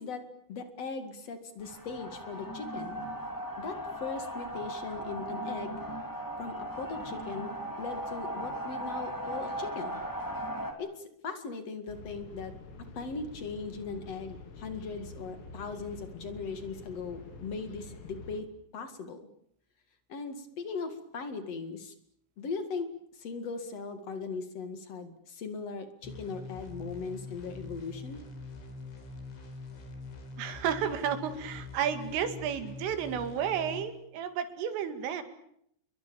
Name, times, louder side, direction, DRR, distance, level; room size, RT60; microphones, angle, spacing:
voice 1, 0.0-3.0 3.6-5.8 6.4-10.0 10.8-12.5 12.9-18.5 18.7-19.3 20.1-21.9 22.4-28.2, left 4 dB, 50° left, 9 dB, 2.0 m, -39 dB
sound 1, 1.6-10.7, equal, 5° left, 2.0 m, -37 dB
sound 2, 11.9-18.4, left 3 dB, 85° left, 5.7 m, -47 dB
sound 3, 26.0-33.8, left 3 dB, 65° left, 6.6 m, -44 dB
voice 2, 30.4-35.2, right 8 dB, 80° right, 9 dB, 4.7 m, -32 dB
29.5 x 22.5 x 7.1 m, 0.71 s
omnidirectional pair, 5.7 m